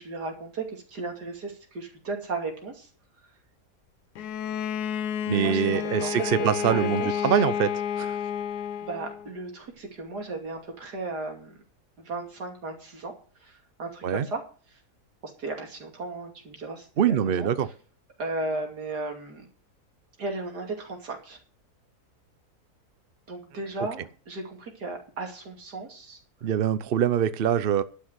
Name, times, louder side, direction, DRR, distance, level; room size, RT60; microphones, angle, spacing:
voice 1, 0.0-2.9 5.3-7.3 8.8-11.6 12.0-13.1 13.4-14.4 14.7-14.8 15.2-17.5 18.2-19.5 20.2-21.4 23.3-26.2, right 3 dB, 80° right, 3.2 m, -35 dB
Bowed string instrument, 4.2-9.3, left 8 dB, 75° left, 1.3 m, -30 dB
voice 2, 5.3-8.2 14.0-14.3 17.0-17.7 26.4-27.8, right 9 dB, 50° right, 0.7 m, -24 dB
11.5 x 6.4 x 8.1 m
omnidirectional pair, 1.7 m